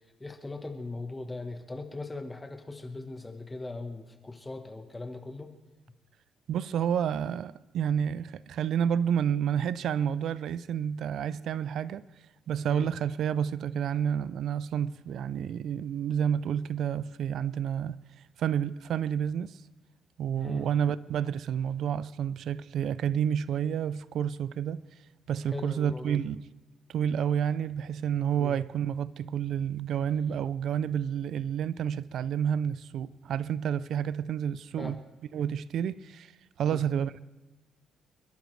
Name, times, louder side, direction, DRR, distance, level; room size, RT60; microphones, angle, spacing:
voice 1, 0.2-5.5 12.7-12.9 20.4-20.7 25.5-26.2 28.4-28.6 34.8-34.9 36.7-36.8, left 2 dB, 20° left, 1.3 m, -39 dB
voice 2, 6.5-12.0 12.5-18.0 18.4-19.6 20.2-24.8 25.3-26.5 26.9-35.0 35.3-36.3 36.6-37.2, right 8 dB, 70° right, 0.4 m, -30 dB
28.0 x 11.5 x 3.3 m
cardioid pair, 90°, 0 cm